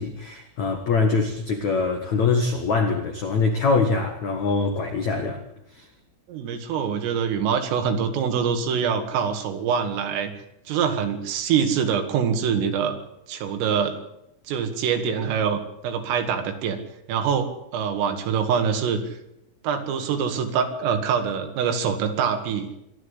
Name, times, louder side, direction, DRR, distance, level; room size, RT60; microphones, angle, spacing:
voice 1, 0.0-5.4 5.7-5.9, left 4 dB, 75° left, 5 dB, 1.7 m, -23 dB
voice 2, 6.3-10.3 10.7-13.0 13.3-14.0 14.5-16.8 17.1-19.0 19.6-22.8, right 7 dB, 75° right, 6 dB, 4.6 m, -24 dB
27.0 x 12.0 x 8.3 m, 0.81 s
omnidirectional pair, 6.0 m